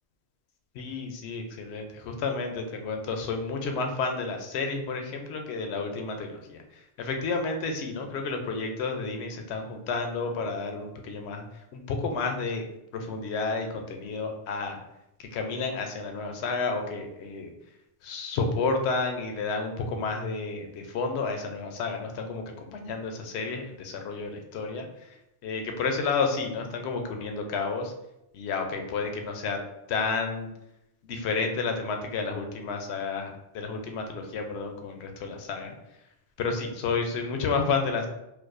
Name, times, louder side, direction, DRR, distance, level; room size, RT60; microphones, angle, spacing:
voice 1, 0.8-6.6 7.0-11.4 11.7-12.6 12.9-14.8 15.3-17.5 18.0-22.4 22.7-24.9 25.4-27.9 28.3-29.6 29.9-30.5 31.1-35.7 36.4-38.1, left 4 dB, 70° left, 4 dB, 0.8 m, -31 dB
4.6 x 2.2 x 2.5 m, 0.88 s
omnidirectional pair, 1.2 m